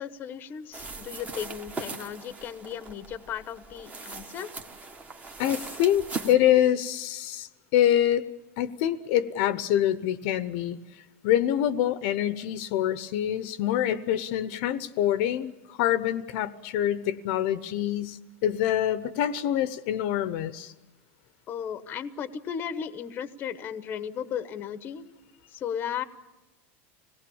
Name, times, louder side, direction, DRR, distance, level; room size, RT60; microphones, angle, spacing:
voice 1, 0.0-4.5 21.5-25.1 25.5-26.0, left 8 dB, 25° left, 13 dB, 1.0 m, -35 dB
sound 1, 0.7-6.3, right 3 dB, 20° right, 1.5 m, -39 dB
voice 2, 5.4-8.3 8.6-10.8 11.2-20.7, left 11 dB, 50° left, 14 dB, 0.9 m, -25 dB
26.5 x 18.5 x 7.1 m, 1.1 s
supercardioid pair, 160°, 8 cm